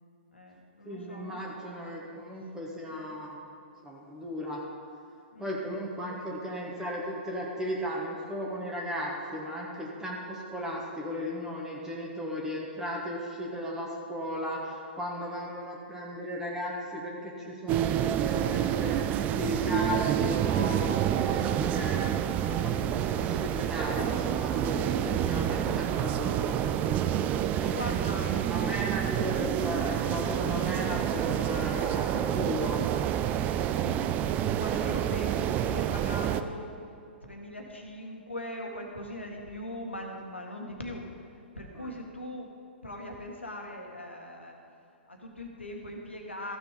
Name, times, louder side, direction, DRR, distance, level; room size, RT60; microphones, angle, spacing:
voice 1, 0.3-2.1 2.9-3.2 5.3-5.5 6.0-6.2 6.7-6.8 15.2-15.5 22.7-23.1 27.7-28.7 30.0-30.2 33.8-36.7 37.2-41.1 41.6-42.5 42.8-44.5 45.1-46.6, left 1 dB, 85° left, 1 dB, 1.8 m, -41 dB
voice 2, 0.8-3.4 3.8-4.6 5.4-22.1 22.5-26.6 27.5-32.8 41.7-41.9, equal, 10° right, -3 dB, 1.5 m, -36 dB
sound 1, 17.7-36.4, right 10 dB, 25° right, 0.4 m, -28 dB
14.5 x 6.7 x 5.1 m, 2.5 s
figure-of-eight pair, 115°, 6 cm